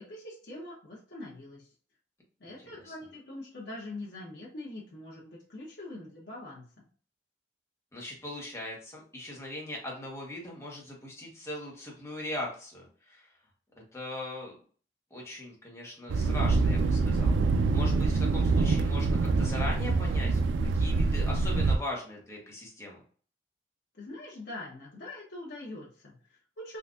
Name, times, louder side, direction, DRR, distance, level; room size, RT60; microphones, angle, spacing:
voice 1, 0.0-1.7 2.4-6.6 23.9-26.8, left 2 dB, 60° left, -5 dB, 0.8 m, -43 dB
voice 2, 7.9-13.3 13.9-14.5 15.1-17.4 17.7-23.0, left 1 dB, 15° left, -2 dB, 1.1 m, -40 dB
Thunder, 16.1-21.8, right 3 dB, 90° right, 0.3 m, -25 dB
3.7 x 2.6 x 2.3 m, 0.44 s
head